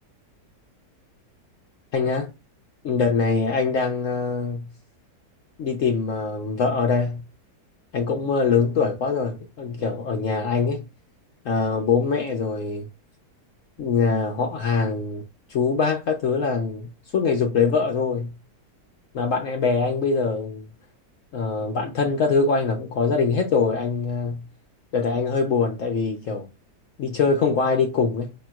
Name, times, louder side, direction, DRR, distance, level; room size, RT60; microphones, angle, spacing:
voice 1, 1.9-2.3 2.8-4.7 5.6-7.2 7.9-10.9 11.4-12.9 13.8-15.2 15.5-18.4 19.1-20.7 21.3-24.5 24.9-26.5 27.0-28.3, left 5 dB, 60° left, 0.9 m, -23 dB
5.1 x 3.1 x 2.2 m
omnidirectional pair, 1.7 m